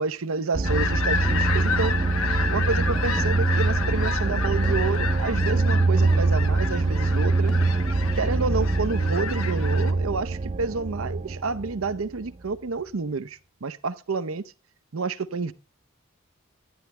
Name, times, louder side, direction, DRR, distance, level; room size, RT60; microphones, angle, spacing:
voice 1, 0.0-1.9 2.5-7.5 8.2-14.4 14.9-15.5, right 4 dB, 75° right, 0.7 m, -29 dB
sound 1, 0.5-12.5, right 3 dB, 30° right, 0.4 m, -24 dB
sound 2, 0.6-9.9, left 5 dB, 75° left, 1.1 m, -31 dB
sound 3, 1.1-8.4, right 1 dB, 5° left, 1.1 m, -40 dB
12.0 x 10.5 x 3.2 m
head